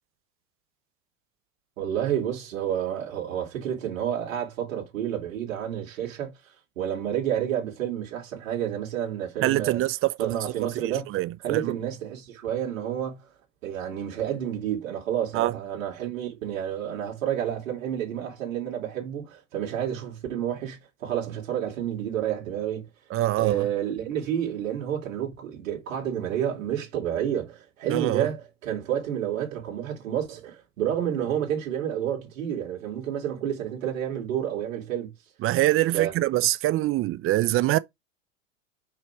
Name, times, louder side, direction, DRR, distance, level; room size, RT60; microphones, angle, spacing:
voice 1, 1.8-6.3 6.8-9.8 10.2-11.1 11.4-13.3 13.6-22.9 23.4-35.1 35.9-36.1, right 10 dB, 75° right, 3.5 m, -30 dB
voice 2, 9.4-10.4 10.6-11.7 15.3-15.5 23.1-23.7 27.9-28.3 35.4-37.8, right 16 dB, 35° right, 0.6 m, -24 dB
5.5 x 4.9 x 4.7 m
hypercardioid pair, 100°, 39 cm